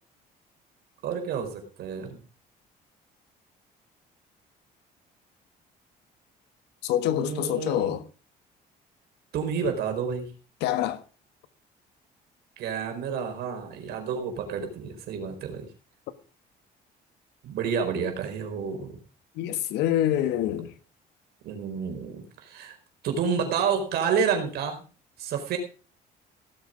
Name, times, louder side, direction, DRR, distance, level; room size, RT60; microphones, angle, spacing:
voice 1, 1.0-2.2 7.1-8.0 9.3-10.3 12.6-15.7 17.4-19.0 21.4-22.8 23.0-24.8 25.2-25.6, right 6 dB, 70° right, 4.5 m, -29 dB
voice 2, 6.8-8.0 10.6-11.0 19.4-20.7, left 12 dB, 90° left, 1.5 m, -26 dB
17.5 x 8.2 x 5.1 m
cardioid pair, 110°, 17 cm